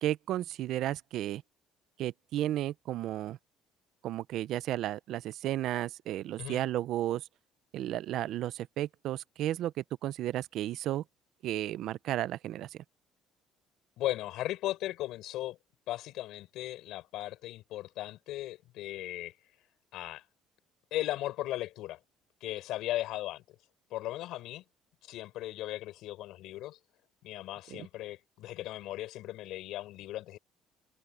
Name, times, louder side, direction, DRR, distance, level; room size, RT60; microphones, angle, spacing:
voice 1, 0.0-1.4 2.0-3.4 4.0-7.2 7.7-11.0 11.4-12.7 27.8-27.9, right 13 dB, 60° right, 0.5 m, -33 dB
voice 2, 14.0-15.6 15.9-19.3 19.9-20.2 20.9-22.0 22.4-23.4 23.9-24.6 25.1-26.8 27.2-30.4, left 15 dB, 70° left, 4.3 m, -37 dB
cardioid pair, 160°, 0 cm